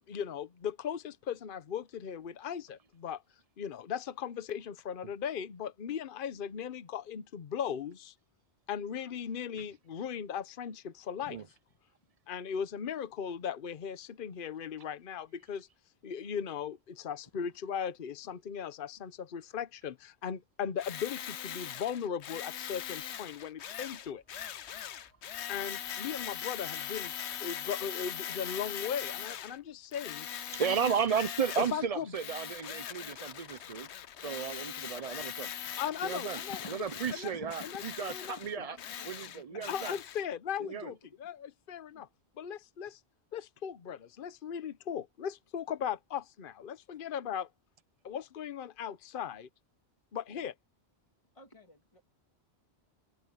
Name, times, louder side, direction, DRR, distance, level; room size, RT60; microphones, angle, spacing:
voice 1, 0.1-3.2 3.6-8.1 8.7-11.4 12.3-15.7 16.0-24.2 25.5-27.1 27.4-30.3 30.6-30.8 31.6-32.1 35.8-36.6 37.1-37.3 37.6-38.4 39.7-40.9 41.2-42.1 42.4-43.0 43.3-47.5 48.0-49.5 50.1-50.5, left 8 dB, 55° left, 1.0 m, -38 dB
Tools, 20.8-29.6 29.9-31.9 32.1-40.2, left 9 dB, 85° left, 1.0 m, -41 dB
sound 1, 23.9-31.5, left 1 dB, 20° right, 7.8 m, -74 dB
voice 2, 30.5-33.9 34.2-35.5 36.0-36.4 36.7-38.1 38.4-38.8 39.1-39.9 40.6-40.9, right 7 dB, 40° right, 0.7 m, -34 dB
voice 3, 36.5-40.2 40.6-41.2 41.9-42.0 51.3-52.0, left 2 dB, 30° left, 2.8 m, -52 dB
omnidirectional pair, 1.1 m